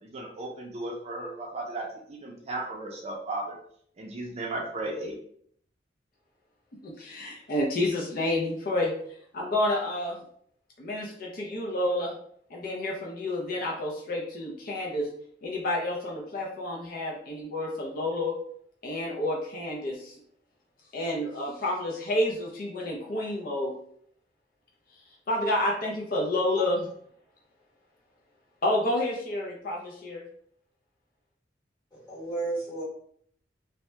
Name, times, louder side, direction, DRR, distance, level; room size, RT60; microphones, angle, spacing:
voice 1, 0.0-3.6 4.0-5.1, right 2 dB, 35° right, 0 dB, 0.5 m, -35 dB
voice 2, 6.8-8.9 9.3-10.2 10.8-12.2 12.5-15.1 15.4-18.4 18.8-20.1 20.9-23.7 25.3-26.8 28.6-30.3, left 1 dB, 55° left, -2 dB, 0.5 m, -29 dB
voice 3, 31.9-32.8, right 3 dB, 25° left, -7 dB, 1.5 m, -33 dB
2.7 x 2.1 x 3.2 m, 0.64 s
head